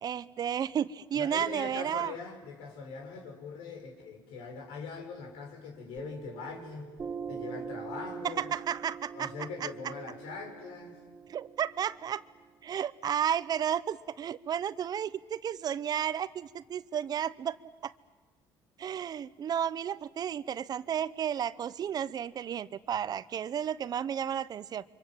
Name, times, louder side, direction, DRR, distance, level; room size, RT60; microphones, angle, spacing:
voice 1, 0.0-2.1 8.2-9.7 11.3-12.2 12.6-17.6 17.8-17.9 18.8-24.8, right 9 dB, 45° right, 16 dB, 0.8 m, -32 dB
voice 2, 1.1-6.9 7.3-8.5 9.1-11.0, left 4 dB, 90° left, 3 dB, 5.9 m, -42 dB
Piano, 6.0-13.0, right 6 dB, 30° right, 2.3 m, -44 dB
29.0 x 25.5 x 7.7 m, 1.2 s
cardioid pair, 110°, 9 cm